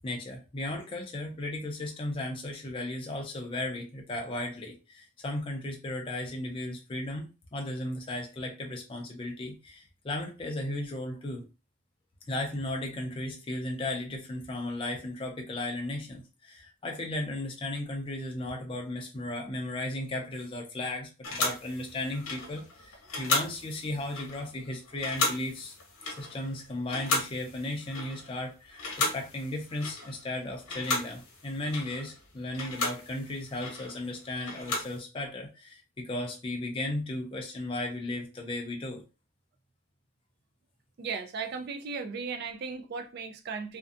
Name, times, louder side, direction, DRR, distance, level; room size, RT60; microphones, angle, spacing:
voice 1, 0.0-11.4 12.3-25.8 26.1-39.0, left 1 dB, 25° left, 0.4 m, -35 dB
sound 1, 21.2-28.5 28.7-30.3 30.6-35.0, left 3 dB, 85° left, 0.8 m, -35 dB
voice 2, 41.0-43.8, right 5 dB, 50° right, 0.3 m, -36 dB
2.5 x 2.2 x 2.4 m
head